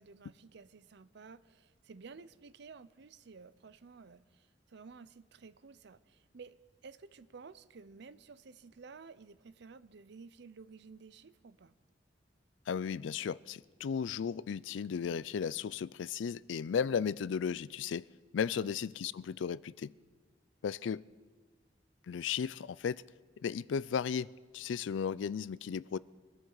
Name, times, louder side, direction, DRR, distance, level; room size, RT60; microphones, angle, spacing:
voice 1, 0.0-11.8 18.5-18.8, right 4 dB, 65° right, 16 dB, 0.6 m, -53 dB
voice 2, 12.7-18.1 18.3-19.9 20.6-21.0 22.1-23.0 23.4-26.0, left 7 dB, 85° left, 20 dB, 0.4 m, -35 dB
24.0 x 12.5 x 4.0 m, 1.4 s
head